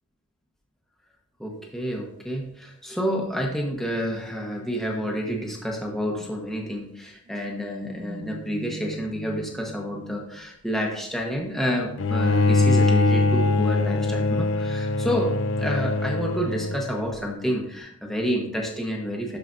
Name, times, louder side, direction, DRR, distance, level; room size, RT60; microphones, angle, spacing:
voice 1, 1.4-19.4, equal, ahead, -1 dB, 1.0 m, -29 dB
sound 1, 3.0-6.6 7.3-10.5 11.5-16.8 17.0-17.3, right 1 dB, 40° right, 0.5 m, -41 dB
Bowed string instrument, 12.0-17.2, left 3 dB, 70° left, 0.4 m, -22 dB
12.0 x 4.9 x 2.6 m, 0.74 s
head